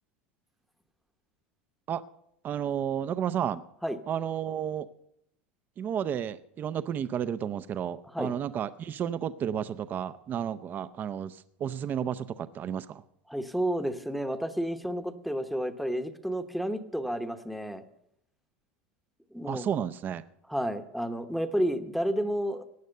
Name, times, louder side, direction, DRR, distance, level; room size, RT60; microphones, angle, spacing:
voice 1, 2.4-3.6 4.1-4.9 5.8-13.0 19.5-20.2, right 9 dB, 35° right, 13 dB, 0.6 m, -32 dB
voice 2, 13.3-17.8 19.3-19.6 20.5-22.6, equal, ahead, 8 dB, 1.0 m, -31 dB
16.0 x 9.4 x 6.6 m, 0.75 s
supercardioid pair, 125°, 6 cm